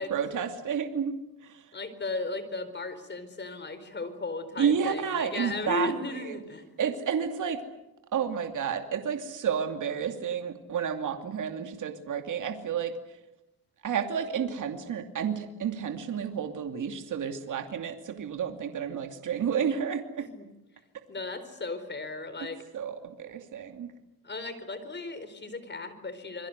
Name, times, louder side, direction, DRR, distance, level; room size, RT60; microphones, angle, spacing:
voice 1, 0.0-1.8 4.6-6.4 6.8-7.6 8.1-13.2 13.8-20.3 22.7-23.9, right 7 dB, 55° right, 6 dB, 2.7 m, -31 dB
voice 2, 1.7-6.6 20.2-20.5 21.1-22.6 24.2-26.5, left 3 dB, 30° left, 11 dB, 4.3 m, -36 dB
27.5 x 22.5 x 8.1 m, 0.94 s
cardioid pair, 115°, 37 cm